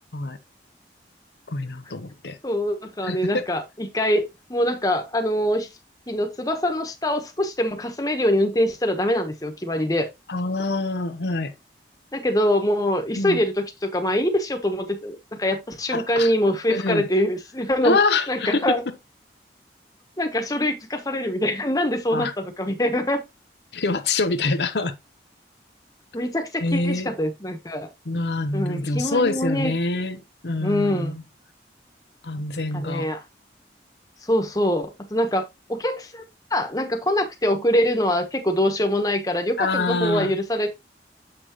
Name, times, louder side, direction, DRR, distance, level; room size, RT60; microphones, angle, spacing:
voice 1, 1.5-2.4 3.0-3.4 10.3-11.5 13.2-13.4 15.9-16.3 16.7-17.0 17.8-18.8 22.1-22.3 23.7-24.9 26.6-27.1 28.1-31.2 32.2-33.1 39.6-40.3, left 3 dB, 75° left, 0.8 m, -25 dB
voice 2, 2.4-5.7 6.1-10.1 12.1-18.0 18.3-18.8 20.2-23.2 26.1-27.9 28.5-29.7 30.6-31.1 32.7-33.2 34.3-35.4 35.7-36.2 36.5-40.7, left 1 dB, 20° left, 1.2 m, -24 dB
7.8 x 5.9 x 3.1 m
head